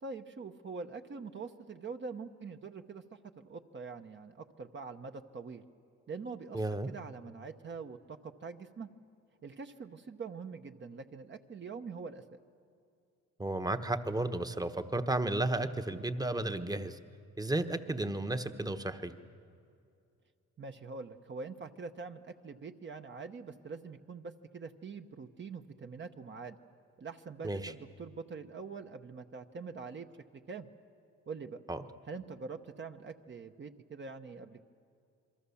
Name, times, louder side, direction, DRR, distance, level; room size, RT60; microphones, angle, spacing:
voice 1, 0.0-5.6 6.1-8.9 9.4-12.2 20.6-26.6 27.0-30.1 30.5-30.7 31.3-31.6 32.1-34.6, right 4 dB, 40° right, 6 dB, 1.0 m, -44 dB
voice 2, 6.5-6.9 13.4-17.0 17.4-19.1 27.4-27.7 31.7-31.8, right 2 dB, 10° right, 9 dB, 1.1 m, -33 dB
27.5 x 22.5 x 7.1 m, 2.4 s
cardioid pair, 90°, 30 cm